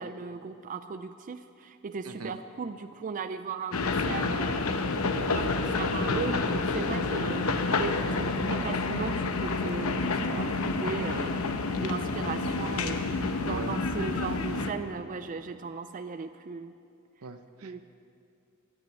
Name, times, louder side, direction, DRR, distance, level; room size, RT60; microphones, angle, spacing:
voice 1, 0.0-4.5 5.0-7.5 7.8-11.4 11.8-16.7 17.6-17.8, right 5 dB, 40° right, 11 dB, 0.4 m, -37 dB
sound 1, 3.7-14.7, left 3 dB, 75° left, 0.9 m, -29 dB
voice 2, 17.2-17.8, right 3 dB, 80° right, 9 dB, 0.8 m, -40 dB
16.5 x 6.4 x 9.8 m, 2.5 s
head